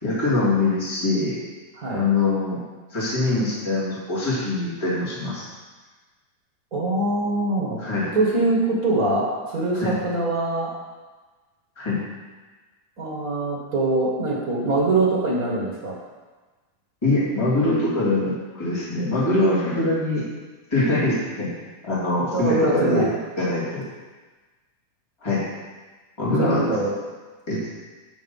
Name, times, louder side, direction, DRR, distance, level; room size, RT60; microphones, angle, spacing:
voice 1, 0.0-1.3 1.9-2.6 2.9-5.4 7.8-8.1 9.7-10.0 11.8-12.0 17.0-20.3 20.7-21.5 21.8-23.1 23.4-23.8 25.2-25.4 26.2-26.6 27.5-27.7, left 2 dB, 10° left, -8 dB, 2.0 m, -23 dB
voice 2, 6.7-7.8 8.1-10.7 13.0-15.9 22.3-23.1 26.4-26.9, right 2 dB, 80° right, -4 dB, 0.8 m, -23 dB
9.1 x 6.3 x 5.5 m, 1.3 s
omnidirectional pair, 4.4 m